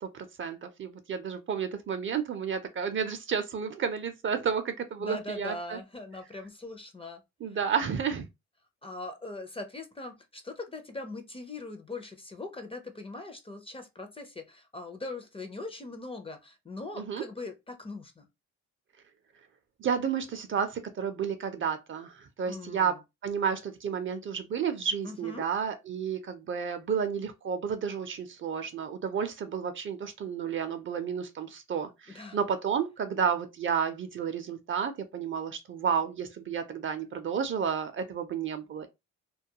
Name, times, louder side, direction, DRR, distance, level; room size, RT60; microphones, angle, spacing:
voice 1, 0.0-5.8 7.4-8.3 17.0-17.2 19.8-23.0 23.2-38.9, right 7 dB, 40° right, 0.5 m, -31 dB
voice 2, 5.0-7.2 8.8-18.3 22.4-23.0 25.0-25.5 32.1-32.4, left 2 dB, 20° left, 0.5 m, -41 dB
2.3 x 2.2 x 2.7 m
cardioid pair, 90°, 30 cm